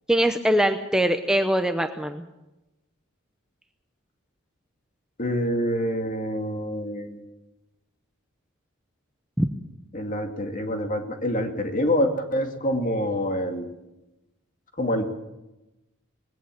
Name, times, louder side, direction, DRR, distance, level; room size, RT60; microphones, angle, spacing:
voice 1, 0.1-2.3 9.4-9.5, right 1 dB, 5° right, 6 dB, 0.7 m, -22 dB
voice 2, 5.2-7.2 9.9-13.7 14.8-15.0, equal, 35° left, 4 dB, 2.3 m, -26 dB
21.0 x 17.0 x 7.6 m, 0.99 s
head